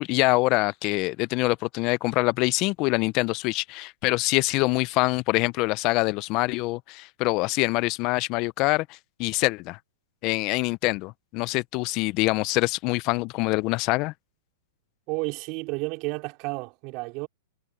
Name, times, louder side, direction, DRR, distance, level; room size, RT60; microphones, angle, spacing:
voice 1, 0.0-9.8 10.2-14.1, left 23 dB, 45° left, 0.6 m, -25 dB
voice 2, 15.1-17.3, right 27 dB, 45° right, 3.9 m, -31 dB
hypercardioid pair, 120°, 0 cm